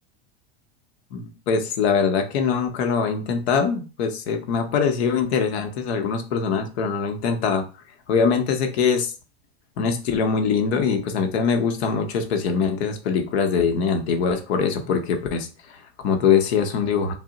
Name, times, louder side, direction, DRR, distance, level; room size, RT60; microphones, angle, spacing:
voice 1, 1.1-7.7 8.1-9.1 9.8-17.1, left 6 dB, 80° left, 5 dB, 0.8 m, -23 dB
2.7 x 2.1 x 3.8 m, 0.33 s
supercardioid pair, 120°, 31 cm